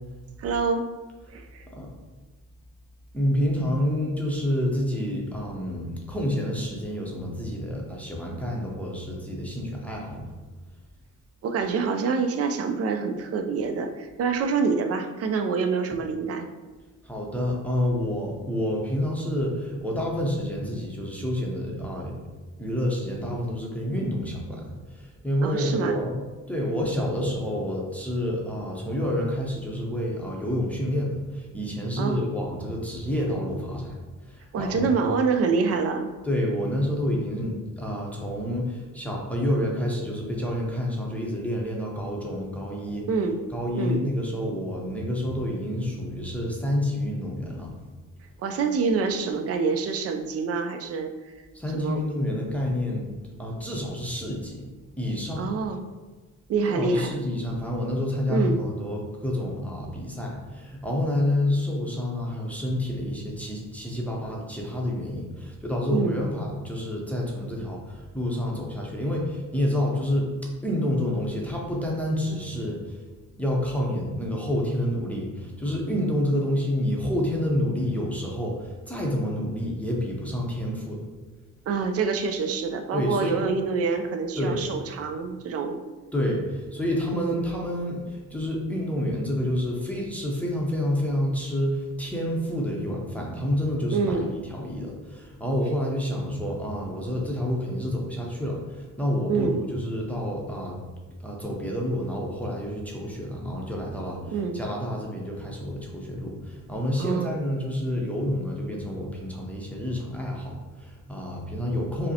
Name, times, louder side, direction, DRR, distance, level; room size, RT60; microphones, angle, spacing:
voice 1, 0.4-0.9 1.3-1.7 11.4-16.5 25.4-26.0 32.0-32.2 34.5-36.1 43.1-43.4 43.7-44.0 48.4-51.3 51.7-52.0 52.4-52.5 55.4-55.8 56.5-57.2 58.3-58.6 65.9-66.2 81.7-85.8 87.1-87.4 93.9-94.3 99.3-99.6 104.3-104.6 107.0-107.3, right 5 dB, 45° right, 6 dB, 0.4 m, -26 dB
voice 2, 3.1-10.2 17.0-22.2 22.6-26.2 26.5-34.0 34.2-35.0 36.2-43.1 43.5-47.7 51.5-53.1 53.4-54.6 55.0-55.5 56.7-70.3 70.6-73.0 73.4-81.0 82.9-83.4 84.4-84.6 86.1-100.8 101.2-112.1, left 1 dB, 5° left, -3 dB, 0.7 m, -28 dB
5.0 x 2.1 x 2.8 m, 1.3 s
cardioid pair, 95°, 33 cm